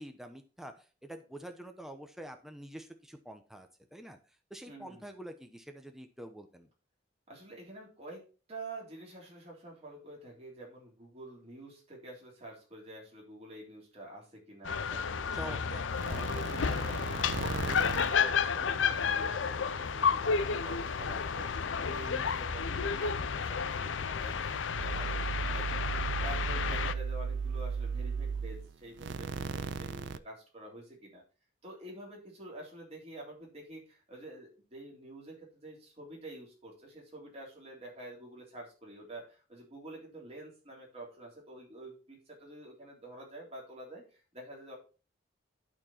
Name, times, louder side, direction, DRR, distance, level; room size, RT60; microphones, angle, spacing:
voice 1, 0.0-4.2 4.5-6.7 15.3-16.5, equal, ahead, 6 dB, 0.8 m, -47 dB
voice 2, 4.7-5.1 7.3-8.2 8.5-15.8 16.1-21.5 21.7-24.5 24.8-25.8 26.2-31.2 31.6-44.7, right 1 dB, 35° right, -2 dB, 3.3 m, -48 dB
sound 1, 14.6-26.9, left 6 dB, 90° left, 0.6 m, -31 dB
sound 2, 14.7-19.2 19.5-30.2, right 5 dB, 65° right, 0.4 m, -38 dB
12.0 x 4.4 x 4.4 m, 0.35 s
head